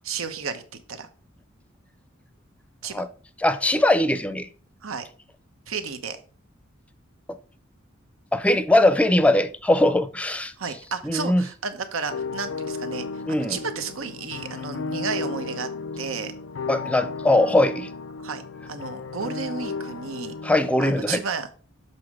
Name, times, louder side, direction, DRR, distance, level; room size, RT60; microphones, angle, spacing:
voice 1, 0.0-0.6 0.9-1.1 2.8-3.0 4.8-5.1 5.7-6.2 10.6-15.7 16.0-16.3 18.2-20.3 20.8-21.6, right 5 dB, 85° right, 0.9 m, -32 dB
voice 2, 3.4-4.5 8.3-10.5 11.0-11.4 13.3-13.6 16.7-17.9 20.4-21.2, left 1 dB, 5° left, 0.5 m, -20 dB
sound 1, 12.1-21.0, left 4 dB, 65° left, 0.5 m, -34 dB
6.9 x 4.2 x 4.8 m
head